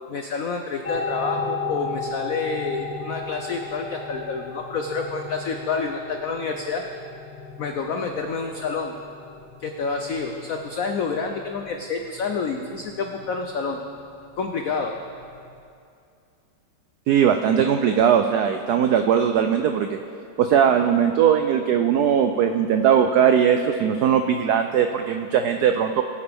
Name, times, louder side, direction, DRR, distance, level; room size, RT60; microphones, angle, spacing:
voice 1, 0.0-6.8 7.6-8.9 9.6-13.8 14.4-14.9, left 4 dB, 85° left, 4 dB, 0.7 m, -28 dB
sound 1, 0.8-15.6, left 3 dB, 45° left, 0.5 m, -36 dB
voice 2, 17.1-19.9 20.4-26.0, right 8 dB, 90° right, 6 dB, 0.8 m, -19 dB
19.5 x 8.7 x 3.5 m, 2.5 s
omnidirectional pair, 2.3 m